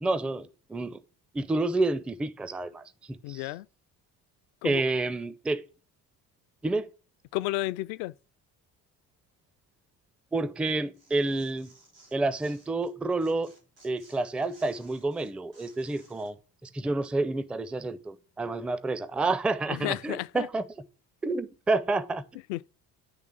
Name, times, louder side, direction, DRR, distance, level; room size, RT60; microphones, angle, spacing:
voice 1, 0.0-1.0 1.3-3.5 4.6-5.6 6.6-6.9 10.3-11.7 12.1-13.5 13.8-16.4 16.6-20.6 21.2-22.2, right 2 dB, ahead, 0.4 m, -29 dB
voice 2, 3.2-3.7 4.6-4.8 7.3-8.1 19.7-20.5 22.5-22.7, left 17 dB, 55° left, 0.5 m, -32 dB
Tearing, 10.7-12.9 13.2-16.3, right 2 dB, 85° right, 4.0 m, -58 dB
10.0 x 3.4 x 6.4 m
figure-of-eight pair, 50°, 50 cm